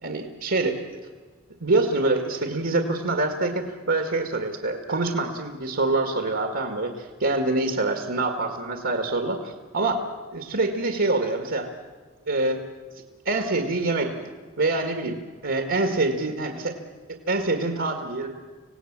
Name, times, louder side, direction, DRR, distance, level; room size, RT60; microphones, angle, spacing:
voice 1, 0.0-0.7 1.6-10.0 10.3-11.7 12.3-12.6 13.3-14.3 14.6-16.7 17.3-18.3, right 2 dB, 65° right, 5 dB, 1.9 m, -25 dB
26.5 x 17.5 x 7.5 m, 1.5 s
head